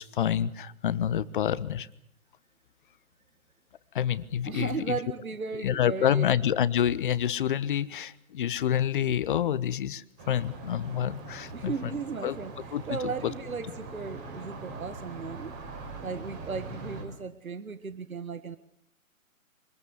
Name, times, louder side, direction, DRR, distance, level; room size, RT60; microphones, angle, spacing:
voice 1, 0.0-1.9 3.9-5.0 5.6-11.7 12.2-12.3 12.7-13.0 13.2-13.3, left 10 dB, 35° left, 17 dB, 1.1 m, -28 dB
voice 2, 4.4-6.3 11.5-15.5 16.0-18.6, right 5 dB, 75° right, 13 dB, 1.7 m, -36 dB
sound 1, 10.2-17.0, right 3 dB, 25° right, 6.2 m, -42 dB
25.5 x 20.5 x 8.1 m, 0.73 s
figure-of-eight pair, 135°, 42 cm